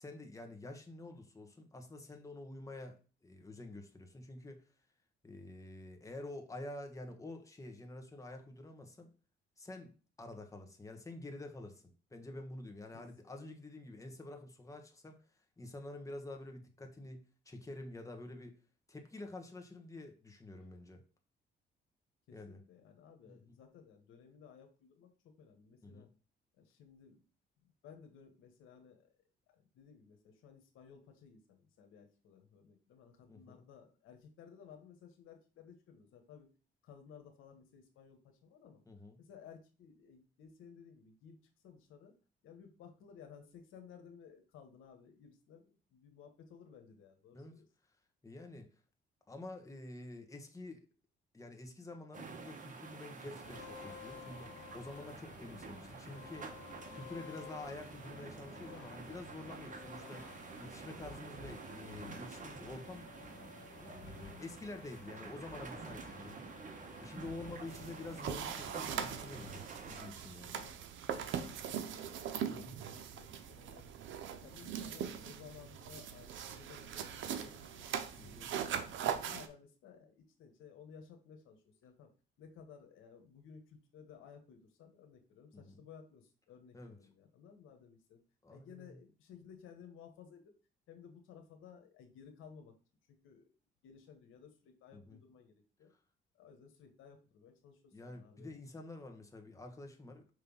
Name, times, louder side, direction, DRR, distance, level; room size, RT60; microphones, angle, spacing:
voice 1, 0.0-4.7 5.2-9.1 9.6-9.9 10.2-15.2 15.6-18.6 18.9-21.0 22.3-22.6 23.2-23.6 25.8-26.1 33.3-33.6 38.9-39.2 47.3-47.6 48.2-48.7 49.3-50.8 51.3-54.5 54.7-56.5 56.9-60.3 60.6-63.1 63.8-66.5 67.0-70.6 72.5-72.8 78.2-78.5 85.5-85.8 86.7-87.0 88.4-89.0 94.9-95.2 97.9-100.3, left 2 dB, 15° left, 4 dB, 1.3 m, -48 dB
voice 2, 22.3-26.1 26.6-27.2 27.6-29.1 29.5-36.5 36.8-38.8 39.2-41.4 41.6-42.1 42.4-47.7 67.6-67.7 70.5-70.9 71.2-74.0 74.4-78.6 79.1-82.1 82.4-88.2 88.5-90.5 90.9-92.7 93.1-93.5 93.8-95.5 95.8-95.9 96.3-98.5, left 7 dB, 85° left, 5 dB, 1.2 m, -57 dB
sound 1, 52.1-70.1, right 4 dB, 40° right, 1.2 m, -50 dB
sound 2, 53.4-69.6, left 4 dB, 60° left, 2.1 m, -53 dB
sound 3, 67.7-79.5, right 8 dB, 75° right, 0.8 m, -41 dB
5.5 x 3.3 x 5.4 m, 0.36 s
cardioid pair, 90°, 20 cm